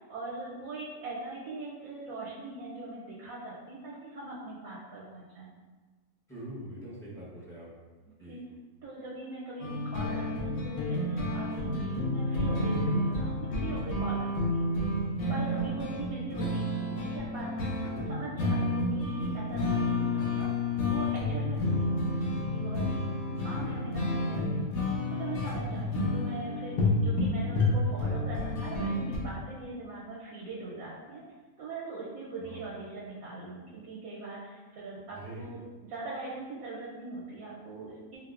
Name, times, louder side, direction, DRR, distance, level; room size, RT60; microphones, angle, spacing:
voice 1, 0.0-5.5 8.0-8.4 8.8-14.6 15.3-20.5 20.9-23.1 23.4-24.6 25.1-31.2 31.6-38.2, right 2 dB, 85° right, -6 dB, 1.1 m, -41 dB
voice 2, 6.3-7.7 8.2-8.4 12.4-12.5 15.9-16.0 19.5-19.6 23.6-23.8 32.4-32.7 35.2-35.4, right 1 dB, 5° left, -9 dB, 0.5 m, -44 dB
sound 1, 9.6-29.2, left 2 dB, 85° left, 1.1 m, -30 dB
4.3 x 2.0 x 2.4 m, 1.3 s
omnidirectional pair, 1.4 m